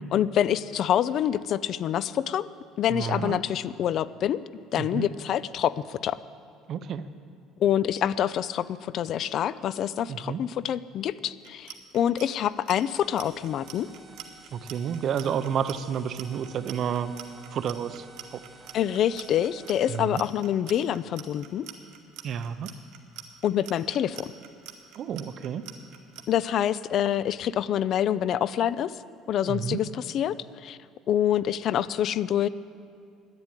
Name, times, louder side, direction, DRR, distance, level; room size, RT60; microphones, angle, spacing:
voice 1, 0.1-2.5 2.8-4.4 4.7-6.2 7.6-13.9 18.7-21.7 23.4-24.3 26.3-28.9 29.3-30.8 31.1-32.5, left 10 dB, 45° left, 17 dB, 0.3 m, -26 dB
voice 2, 2.9-3.4 4.8-5.1 6.7-7.0 10.1-10.4 14.5-17.1 17.5-18.0 18.3-18.4 19.9-20.2 22.2-22.7 24.9-25.6 29.5-29.8, right 8 dB, 40° right, 12 dB, 0.6 m, -30 dB
Clock, 11.4-26.2, right 13 dB, 70° right, 1.3 m, -44 dB
sound 1, 12.9-20.1, right 3 dB, 5° right, 0.8 m, -53 dB
10.5 x 8.9 x 9.8 m, 2.4 s
cardioid pair, 155°, 0 cm